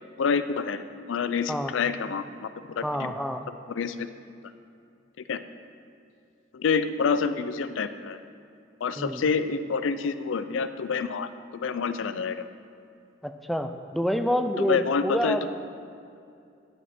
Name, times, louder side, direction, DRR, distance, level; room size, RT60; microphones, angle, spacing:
voice 1, 0.2-3.1 3.5-4.1 5.3-5.4 6.5-8.2 8.8-12.5 14.6-15.5, left 5 dB, 80° left, 12 dB, 0.4 m, -28 dB
voice 2, 2.8-3.5 9.0-9.2 13.2-15.5, equal, ahead, 6 dB, 0.3 m, -28 dB
11.5 x 6.5 x 4.3 m, 2.5 s
head